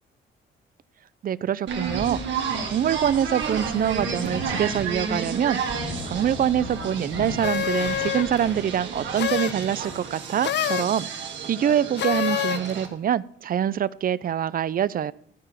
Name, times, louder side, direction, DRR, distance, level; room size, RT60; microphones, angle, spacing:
voice 1, 1.2-2.2 2.6-5.6 6.0-11.1 11.5-15.1, right 10 dB, 45° right, 19 dB, 0.4 m, -25 dB
sound 1, 1.7-12.9, right 6 dB, 65° right, 2.1 m, -32 dB
Thunder / Rain, 4.0-10.0, left 2 dB, 90° left, 4.5 m, -38 dB
sound 2, 7.4-8.4 9.2-9.7 10.4-11.0 12.0-12.7, left 11 dB, 60° left, 0.5 m, -26 dB
13.0 x 4.7 x 7.1 m, 0.68 s
cardioid pair, 90°, 20 cm